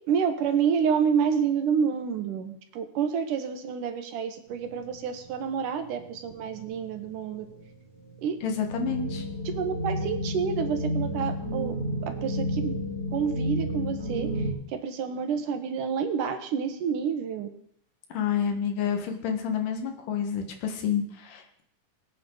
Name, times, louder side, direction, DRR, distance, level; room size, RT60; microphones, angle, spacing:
voice 1, 0.1-7.5 8.2-8.4 9.5-11.7 12.0-12.7 13.1-14.3 14.7-17.5, right 7 dB, 80° right, 7 dB, 2.8 m, -28 dB
sound 1, 4.5-14.5, equal, 60° right, 3.8 m, -32 dB
voice 2, 8.4-9.2 18.1-21.6, left 7 dB, 90° left, 5 dB, 3.2 m, -29 dB
22.5 x 8.7 x 4.0 m, 0.68 s
omnidirectional pair, 3.7 m